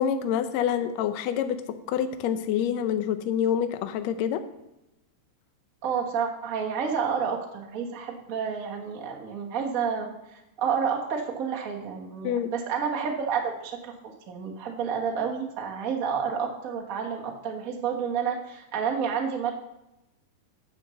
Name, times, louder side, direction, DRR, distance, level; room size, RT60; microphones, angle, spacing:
voice 1, 0.0-4.4 12.2-12.5, left 9 dB, 80° left, 10 dB, 1.6 m, -27 dB
voice 2, 5.8-10.1 10.6-19.5, right 6 dB, 85° right, -1 dB, 0.7 m, -30 dB
9.3 x 6.4 x 7.0 m, 0.92 s
omnidirectional pair, 4.0 m